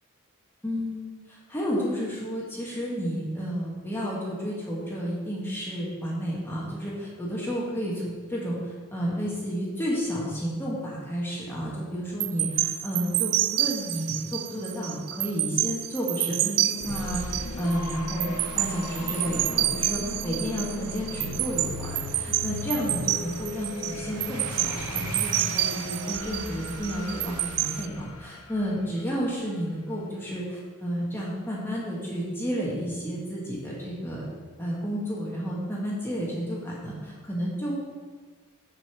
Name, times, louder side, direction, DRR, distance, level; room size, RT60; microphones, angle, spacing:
voice 1, 0.6-34.2 34.6-37.8, equal, 10° left, -5 dB, 1.4 m, -31 dB
sound 1, 12.2-27.9, right 15 dB, 85° right, 0.4 m, -29 dB
sound 2, 16.8-29.5, left 2 dB, 85° left, 0.8 m, -37 dB
6.3 x 5.3 x 6.7 m, 1.5 s
head